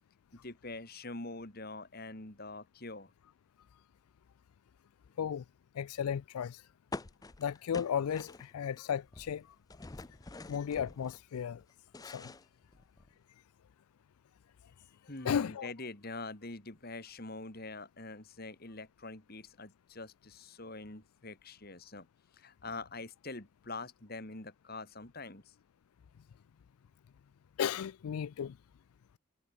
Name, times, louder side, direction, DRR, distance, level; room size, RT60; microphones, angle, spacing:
voice 1, 0.3-3.1 15.1-22.1 22.3-25.5, left 3 dB, 45° left, 2.5 m, -45 dB
voice 2, 5.8-6.6 7.4-9.5 10.5-11.6 12.0-12.3 15.2-15.7 27.6-28.5, left 8 dB, 90° left, 0.4 m, -34 dB
sound 1, 6.9-8.8 9.1-11.2 11.6-13.2, left 3 dB, 15° left, 0.4 m, -46 dB
head